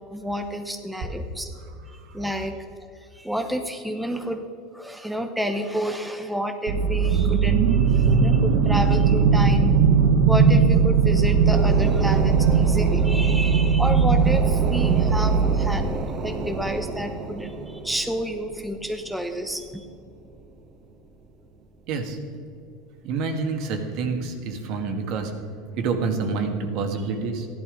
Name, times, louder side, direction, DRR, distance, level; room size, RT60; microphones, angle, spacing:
voice 1, 0.1-1.5 2.1-2.6 3.0-4.4 4.7-9.8 10.3-15.9 16.2-19.8, equal, 5° right, 5 dB, 0.8 m, -30 dB
sound 1, 6.7-15.8, right 5 dB, 75° right, 1.2 m, -19 dB
sound 2, 11.5-21.5 21.8-21.9, right 3 dB, 40° right, 1.4 m, -33 dB
voice 2, 21.9-22.2 23.0-25.3 25.7-27.5, right 4 dB, 55° right, 5 dB, 1.8 m, -28 dB
14.0 x 11.0 x 5.2 m, 2.6 s
supercardioid pair, 125°, 0 cm